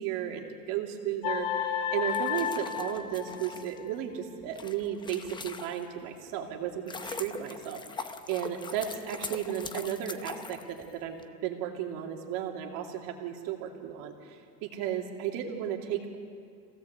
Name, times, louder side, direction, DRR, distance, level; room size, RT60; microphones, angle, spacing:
voice 1, 0.0-11.2 11.4-16.2, right 10 dB, 65° right, 2 dB, 2.8 m, -34 dB
sound 1, 1.2-3.9, left 8 dB, 70° left, 1.7 m, -32 dB
sound 2, 2.0-6.1 6.5-11.2, left 4 dB, 15° left, 0.7 m, -42 dB
25.5 x 17.5 x 8.1 m, 2.4 s
cardioid pair, 150°, 35 cm